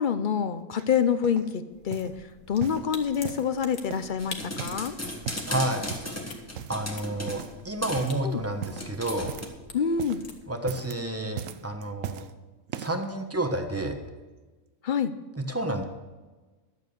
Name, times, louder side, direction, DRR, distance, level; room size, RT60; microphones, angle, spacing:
voice 1, 0.0-2.1 2.5-4.9 8.2-8.4 9.7-10.2 14.8-15.1, left 7 dB, 55° left, 12 dB, 0.5 m, -26 dB
sound 1, 0.8-1.5 1.9-2.2 2.6-3.5 3.9-4.9 5.1-5.5 5.9-6.2 6.6-7.0 7.3-7.6 7.9-8.2 8.6-9.6 9.9-10.3 10.6-11.0 11.4-12.3 12.7-13.1 13.7-13.8, right 9 dB, 70° right, 1.0 m, -39 dB
sound 2, 1.7-10.4, left 4 dB, 85° left, 1.7 m, -46 dB
sound 3, 4.2-7.5 7.8-8.1 8.8-9.5, left 1 dB, 10° left, 1.5 m, -36 dB
voice 2, 5.5-5.9 6.7-9.3 10.5-12.2 12.8-14.0 15.3-15.8, right 1 dB, 10° right, 5 dB, 1.0 m, -30 dB
11.5 x 8.4 x 6.8 m, 1.3 s
omnidirectional pair, 1.5 m